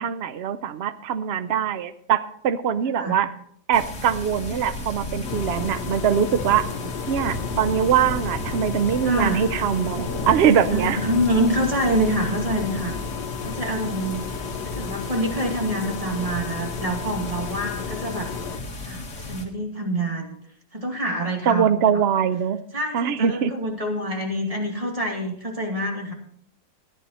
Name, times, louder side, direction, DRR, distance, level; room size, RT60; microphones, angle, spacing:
voice 1, 0.0-3.3 3.7-6.7 7.1-11.0 21.5-22.6 22.9-23.5, right 8 dB, 90° right, 13 dB, 0.5 m, -22 dB
sound 1, 3.7-19.4, left 2 dB, 45° left, 2.2 m, -33 dB
sound 2, 5.2-18.6, left 7 dB, 80° left, 1.4 m, -34 dB
voice 2, 9.0-9.4 10.7-13.0 13.4-18.3 18.8-20.3 20.7-21.7 22.7-26.1, right 1 dB, 20° right, 1 dB, 2.2 m, -26 dB
14.0 x 10.5 x 4.2 m, 0.65 s
omnidirectional pair, 1.8 m